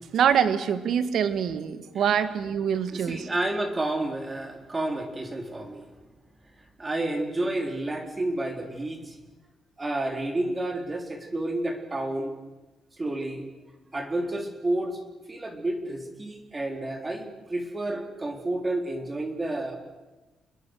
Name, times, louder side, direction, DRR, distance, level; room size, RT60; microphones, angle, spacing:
voice 1, 0.1-3.3, right 8 dB, 70° right, 11 dB, 1.8 m, -25 dB
voice 2, 2.9-5.9 6.8-9.2 9.8-12.3 13.0-13.4 13.9-15.0 15.3-19.8, right 1 dB, 25° right, 4 dB, 3.7 m, -30 dB
28.0 x 21.0 x 6.5 m, 1.1 s
cardioid pair, 90°, 0 cm